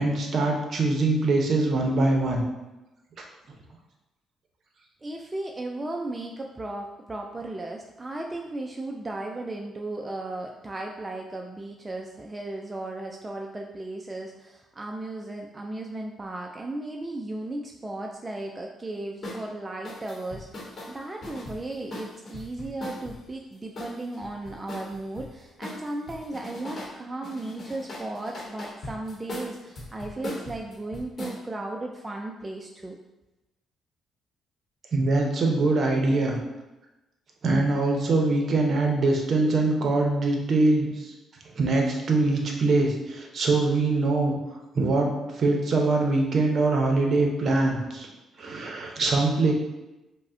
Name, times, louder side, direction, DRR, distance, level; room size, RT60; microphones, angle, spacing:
voice 1, 0.0-2.4 34.9-36.4 37.4-41.1 41.6-44.4 44.7-48.1 48.4-49.5, right 2 dB, 55° right, 1 dB, 0.7 m, -23 dB
voice 2, 5.0-33.0, right 2 dB, 20° right, 1 dB, 0.3 m, -35 dB
sound 1, 19.2-19.4 19.8-23.2 23.8-25.3 25.6-26.9 27.2-31.4, left 1 dB, 45° left, 0.9 m, -39 dB
5.1 x 2.1 x 2.6 m, 1.0 s
cardioid pair, 90°, 0 cm